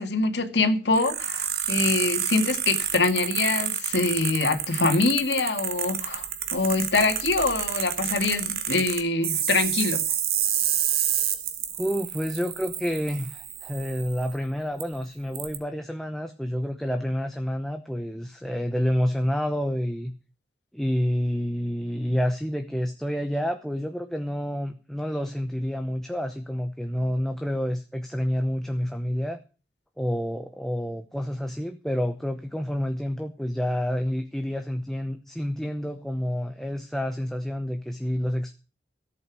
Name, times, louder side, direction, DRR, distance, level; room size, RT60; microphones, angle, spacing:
voice 1, 0.0-10.0, left 3 dB, 80° left, 2.2 m, -24 dB
sound 1, 0.9-14.3 14.8-14.9 15.3-15.6, right 9 dB, 55° right, 1.8 m, -29 dB
voice 2, 11.8-20.1 20.7-29.4 30.0-38.5, equal, ahead, 0.9 m, -29 dB
14.5 x 8.4 x 6.3 m
head